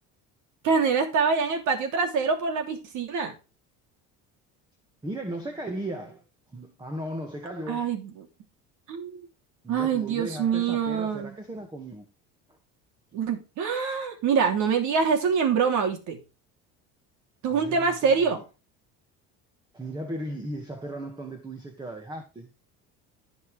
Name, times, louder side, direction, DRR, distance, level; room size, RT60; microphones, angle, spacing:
voice 1, 0.6-3.3 7.7-8.3 8.9-9.2 9.7-11.3 13.1-16.2 17.4-18.4, right 6 dB, 65° right, 3.1 m, -25 dB
voice 2, 5.0-6.2 6.5-7.9 9.6-12.1 17.5-18.4 19.7-22.5, right 1 dB, 15° right, 1.9 m, -36 dB
15.0 x 5.4 x 3.4 m
cardioid pair, 120°, 32 cm